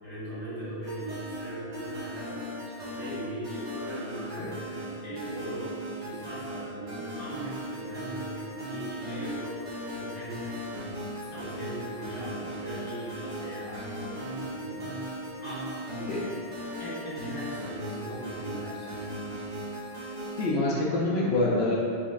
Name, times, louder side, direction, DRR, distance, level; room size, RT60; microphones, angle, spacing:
voice 1, 0.0-5.7 6.0-10.8 11.3-14.9 15.4-16.0 16.5-19.1, right 1 dB, 85° left, -11 dB, 2.0 m, -39 dB
sound 1, 0.8-20.5, equal, 90° right, 1.5 m, -38 dB
voice 2, 20.4-21.8, left 2 dB, 70° left, -5 dB, 0.8 m, -26 dB
4.6 x 3.0 x 2.4 m, 2.5 s
omnidirectional pair, 1.2 m